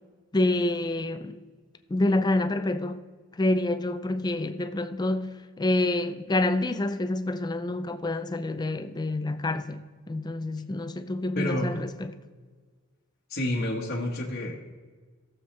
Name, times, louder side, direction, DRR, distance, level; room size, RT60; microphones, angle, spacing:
voice 1, 0.3-1.4 1.9-3.0 3.4-12.2, left 2 dB, 20° left, 0.4 m, -27 dB
voice 2, 11.3-11.8 13.3-14.6, left 1 dB, 45° left, 1.2 m, -29 dB
16.0 x 7.1 x 3.2 m
head